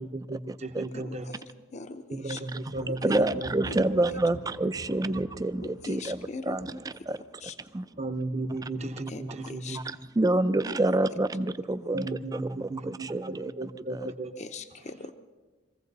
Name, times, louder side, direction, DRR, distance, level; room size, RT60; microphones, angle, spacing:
voice 1, 0.0-1.3 2.1-4.0 4.9-5.0 8.0-9.8 11.9-13.1 13.6-14.3, right 2 dB, 35° right, 0.8 m, -35 dB
voice 2, 0.9-1.4 1.7-2.4 2.9-3.2 3.6-3.7 5.6-6.7 7.4-7.6 9.1-9.8 10.2-10.4 10.9-11.0 14.4-15.1, left 3 dB, 35° left, 0.6 m, -40 dB
Thunder, 2.7-9.2 9.5-10.1 10.5-11.4, left 1 dB, 85° left, 1.1 m, -47 dB
voice 3, 3.0-6.2 6.5-6.7 7.1-7.2 7.7-7.9 9.7-9.8 10.2-13.5 13.9-14.1, right 2 dB, 20° right, 0.4 m, -27 dB
22.5 x 15.5 x 4.1 m
head